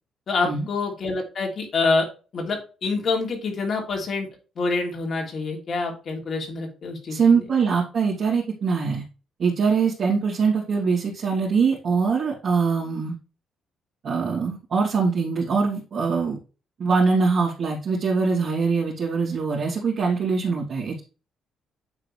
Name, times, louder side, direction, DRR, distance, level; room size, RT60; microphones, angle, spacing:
voice 1, 0.3-2.1 2.3-4.3 4.5-7.5, left 3 dB, 50° left, 1 dB, 3.1 m, -26 dB
voice 2, 7.1-9.0 9.4-13.1 14.0-16.4 16.8-21.0, right 5 dB, 55° right, -7 dB, 2.8 m, -23 dB
9.8 x 3.9 x 3.3 m, 0.33 s
cardioid pair, 90°, 0 cm